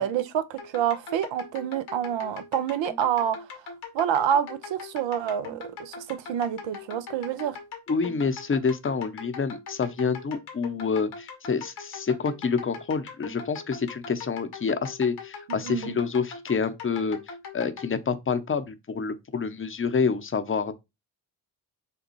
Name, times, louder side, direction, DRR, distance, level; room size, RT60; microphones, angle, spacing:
voice 1, 0.0-3.6 3.9-7.6 15.5-16.0, right 9 dB, 60° right, 0.8 m, -28 dB
sound 1, 0.6-17.9, left 5 dB, 75° left, 1.5 m, -41 dB
voice 2, 7.9-20.7, left 5 dB, 25° left, 0.8 m, -28 dB
6.8 x 2.3 x 3.1 m
hypercardioid pair, 40°, 49 cm